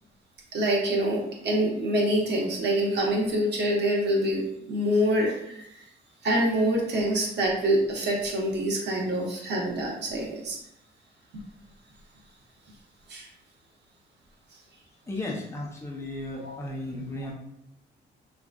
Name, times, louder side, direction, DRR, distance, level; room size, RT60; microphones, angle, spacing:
voice 1, 0.5-5.7 6.2-10.6 13.1-13.3 16.3-16.6, right 1 dB, 60° right, -1 dB, 1.0 m, -26 dB
voice 2, 15.1-17.3, left 1 dB, 15° left, -2 dB, 0.7 m, -35 dB
3.5 x 2.5 x 2.4 m, 0.79 s
cardioid pair, 90°, 20 cm